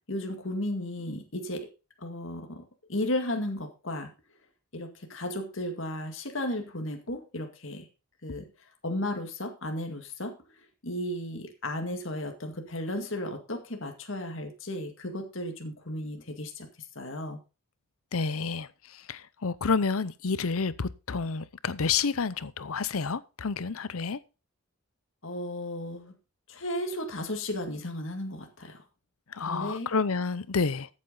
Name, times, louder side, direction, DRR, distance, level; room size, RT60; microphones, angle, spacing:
voice 1, 0.1-1.7 2.0-4.1 4.7-7.9 8.2-8.5 8.8-10.4 10.8-16.7 17.0-17.4 25.2-26.1 26.5-28.8 29.5-29.9, left 1 dB, 60° left, 2.1 m, -34 dB
voice 2, 18.1-24.2 29.3-30.9, left 5 dB, 75° left, 0.7 m, -29 dB
13.5 x 8.4 x 3.9 m
head